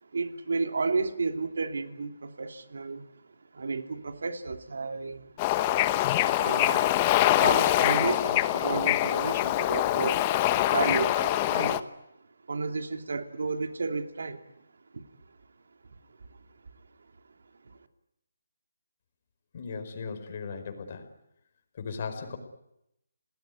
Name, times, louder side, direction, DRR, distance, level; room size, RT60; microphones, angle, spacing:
voice 1, 0.0-3.1 3.5-5.3 5.6-7.0 7.3-10.3 10.7-11.9 12.5-14.4 14.9-15.0 16.8-16.9 17.6-17.8, right 4 dB, 70° right, 6 dB, 2.9 m, -32 dB
Bird / Ocean, 5.4-11.8, left 14 dB, 25° left, 1.0 m, -24 dB
voice 2, 19.5-21.1 21.8-22.4, left 5 dB, 40° left, 5 dB, 5.1 m, -37 dB
30.0 x 19.5 x 9.7 m, 0.83 s
hypercardioid pair, 165°, 0 cm